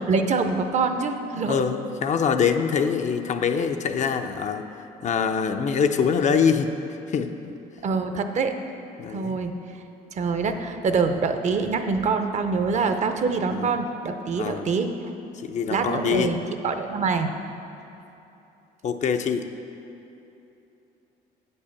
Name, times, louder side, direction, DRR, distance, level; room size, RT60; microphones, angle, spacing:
voice 1, 0.1-1.6 7.8-8.5 9.1-9.5 10.1-14.9 15.7-16.4 16.6-17.3, right 4 dB, 45° right, 7 dB, 0.6 m, -25 dB
voice 2, 1.4-4.6 5.0-6.7 7.1-7.5 9.0-9.4 13.5-13.7 14.4-14.7 15.4-16.4 18.8-19.4, left 6 dB, 45° left, 7 dB, 0.5 m, -24 dB
8.0 x 5.4 x 7.0 m, 2.9 s
cardioid pair, 110°, 17 cm